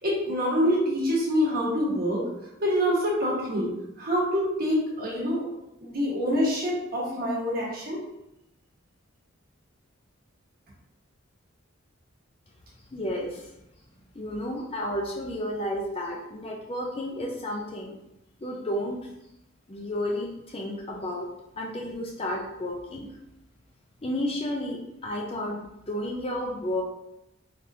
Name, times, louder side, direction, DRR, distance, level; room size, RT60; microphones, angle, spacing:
voice 1, 0.0-2.2 2.6-3.7 4.0-5.5 5.8-8.0, equal, 45° right, -4 dB, 1.3 m, -26 dB
voice 2, 12.9-13.5 14.1-17.9 18.4-19.1 19.7-21.3 21.6-23.1 24.0-26.8, left 1 dB, 25° left, 0 dB, 0.4 m, -32 dB
4.1 x 3.5 x 2.7 m, 0.85 s
head